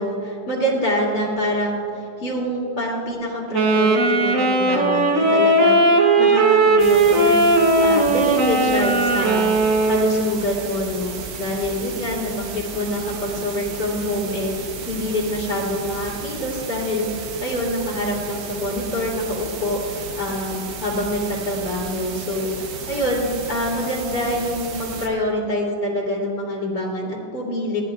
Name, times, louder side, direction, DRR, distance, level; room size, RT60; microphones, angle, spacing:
voice 1, 0.0-7.4 7.8-27.8, left 1 dB, 60° left, -6 dB, 2.9 m, -26 dB
Wind instrument woodwind instrument, 3.5-10.4, right 2 dB, 50° right, 1.3 m, -17 dB
sound 1, 6.8-25.1, right 5 dB, 85° right, 1.7 m, -34 dB
17.5 x 10.5 x 2.4 m, 2.7 s
omnidirectional pair, 2.0 m